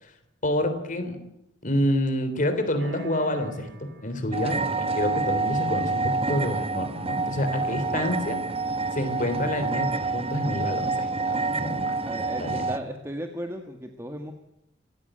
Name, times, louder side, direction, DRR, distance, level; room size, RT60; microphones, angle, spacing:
voice 1, 0.4-1.2 1.6-8.4 8.9-12.0 12.4-12.6, left 1 dB, 40° left, 8 dB, 3.5 m, -28 dB
sound 1, 2.8-4.7, equal, 60° right, 6.0 m, -47 dB
sound 2, 4.3-12.8, right 3 dB, 30° right, 1.0 m, -28 dB
voice 2, 12.0-14.3, equal, 15° right, 5 dB, 1.7 m, -35 dB
28.0 x 15.5 x 9.0 m, 0.86 s
head